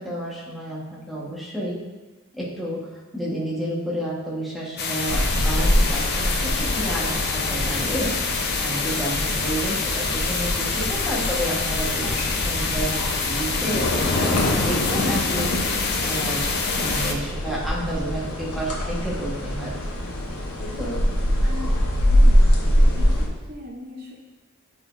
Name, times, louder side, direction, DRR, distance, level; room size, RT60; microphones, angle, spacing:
voice 1, 0.0-1.8 2.3-15.7 16.0-19.8 20.8-21.0, right 1 dB, ahead, -7 dB, 1.3 m, -31 dB
sound 1, 4.8-17.1, left 4 dB, 50° left, 0.7 m, -25 dB
sound 2, 5.1-23.3, equal, 75° left, 1.2 m, -24 dB
voice 2, 14.0-14.4 21.4-21.7 22.1-22.4 22.8-24.2, left 1 dB, 45° right, -1 dB, 0.8 m, -37 dB
8.4 x 4.9 x 2.6 m, 1.1 s
head